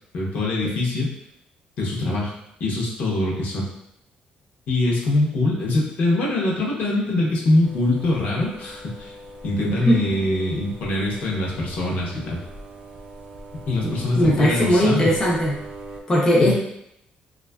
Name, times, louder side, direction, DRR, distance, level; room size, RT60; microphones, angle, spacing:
voice 1, 0.1-1.1 1.8-2.3 2.6-3.7 4.7-9.1 9.4-12.4 13.7-15.1 16.4-16.5, left 2 dB, 65° left, -3 dB, 0.7 m, -23 dB
sound 1, 7.6-16.0, right 2 dB, 55° right, 0.4 m, -41 dB
voice 2, 9.6-10.0 13.8-15.5 16.1-16.5, equal, 20° left, -4 dB, 0.4 m, -19 dB
2.5 x 2.3 x 2.2 m, 0.78 s
cardioid pair, 145°, 3 cm